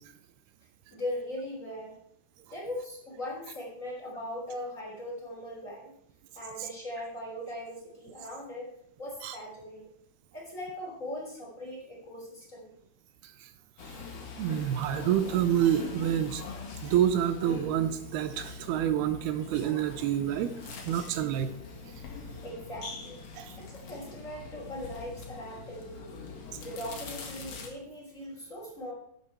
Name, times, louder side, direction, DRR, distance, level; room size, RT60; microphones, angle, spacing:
voice 1, 0.9-2.0 2.5-5.9 6.3-8.7 9.0-9.9 10.3-12.7 22.4-23.2 23.6-26.2 26.6-28.9, left 1 dB, 20° left, -3 dB, 3.1 m, -40 dB
sound 1, 13.8-27.7, left 5 dB, 50° left, 2.5 m, -43 dB
voice 2, 14.4-16.4 16.8-20.5 20.9-21.5 23.4-23.5, right 10 dB, 85° right, 11 dB, 2.7 m, -27 dB
12.5 x 8.9 x 4.4 m, 0.71 s
omnidirectional pair, 4.6 m